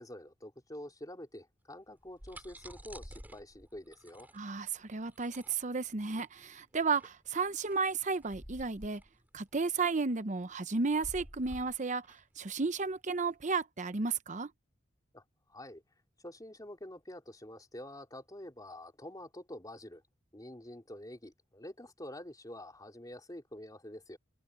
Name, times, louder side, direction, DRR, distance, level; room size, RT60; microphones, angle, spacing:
voice 1, 0.0-4.3 15.1-15.2 15.5-15.8 16.2-20.0 20.3-24.2, left 1 dB, 20° left, 3.5 m, -47 dB
sound 1, 1.9-13.3, equal, 10° right, 6.2 m, -52 dB
voice 2, 4.3-9.0 9.3-14.5, right 4 dB, 40° right, 0.8 m, -33 dB
head